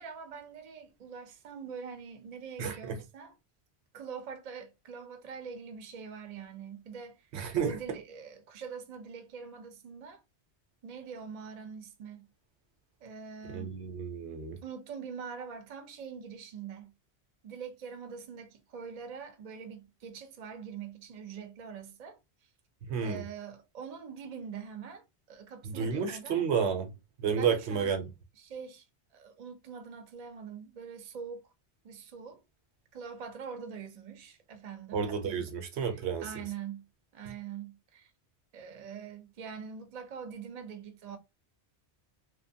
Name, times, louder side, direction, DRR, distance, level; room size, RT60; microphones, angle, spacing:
voice 1, 0.0-3.3 3.9-7.3 7.6-10.2 10.8-12.3 13.0-13.8 14.6-16.9 17.4-22.2 23.0-26.4 27.4-28.0 28.4-28.8 29.1-31.5 31.8-32.4 32.9-35.4 35.8-36.9 37.1-38.1 38.5-41.2, right 6 dB, 45° right, 0.6 m, -44 dB
voice 2, 2.6-3.0 7.3-7.8 13.5-14.6 22.8-23.2 25.6-28.0 34.9-36.3, right 6 dB, 80° right, 1.0 m, -31 dB
2.8 x 2.2 x 2.7 m
omnidirectional pair, 1.1 m